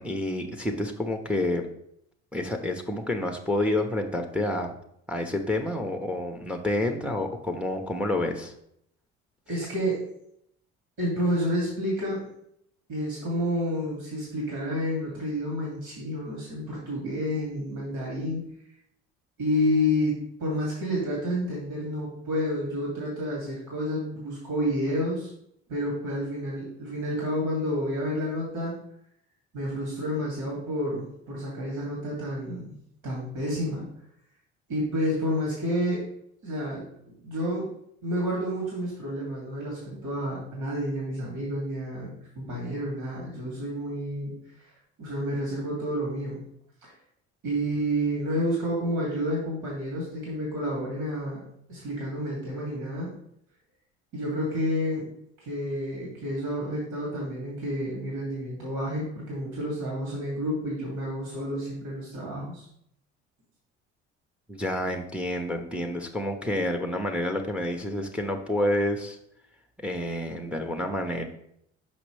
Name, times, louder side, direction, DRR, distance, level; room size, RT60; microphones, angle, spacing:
voice 1, 0.0-1.7 2.3-4.7 5.1-8.5 64.5-69.2 69.8-71.2, left 1 dB, 5° right, 4 dB, 0.8 m, -29 dB
voice 2, 9.5-10.0 11.0-12.2 12.9-18.4 19.4-25.3 25.7-28.7 29.5-32.8 33.0-33.9 34.7-36.1 36.4-37.7 38.0-44.7 45.0-46.4 46.8-46.9 47.4-51.4 51.7-53.1 54.1-55.1 55.4-62.7, equal, 75° right, -4 dB, 2.6 m, -30 dB
6.1 x 5.1 x 3.3 m, 0.72 s
hypercardioid pair, 70°, 33 cm